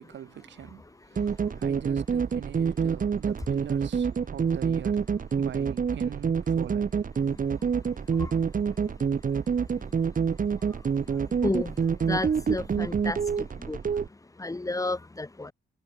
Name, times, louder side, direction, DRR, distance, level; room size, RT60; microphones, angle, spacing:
voice 1, 0.0-7.1, right 10 dB, 65° right, 7.1 m, -43 dB
sound 1, 1.2-14.1, right 6 dB, 45° right, 4.0 m, -27 dB
voice 2, 12.1-13.2 13.7-13.8 14.4-15.5, left 2 dB, 15° left, 2.7 m, -30 dB
cardioid pair, 90°, 20 cm